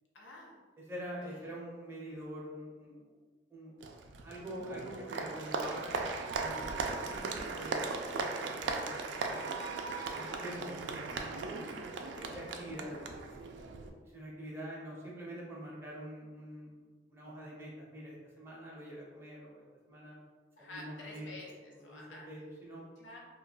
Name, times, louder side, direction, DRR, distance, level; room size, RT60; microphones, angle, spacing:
voice 1, 0.1-0.5 1.3-1.5 10.0-10.3 12.0-12.5 20.6-22.3 23.0-23.2, left 2 dB, 85° left, -3 dB, 0.7 m, -50 dB
voice 2, 0.8-3.2 3.5-3.7 4.2-6.1 6.3-7.8 8.1-9.4 10.1-11.7 12.2-13.5 14.0-16.7 17.1-20.2 20.6-21.3 21.7-22.9, right 1 dB, 15° right, -5 dB, 0.6 m, -45 dB
Applause, 3.8-13.9, right 4 dB, 70° right, 0.3 m, -38 dB
2.3 x 2.2 x 3.8 m, 1.4 s
head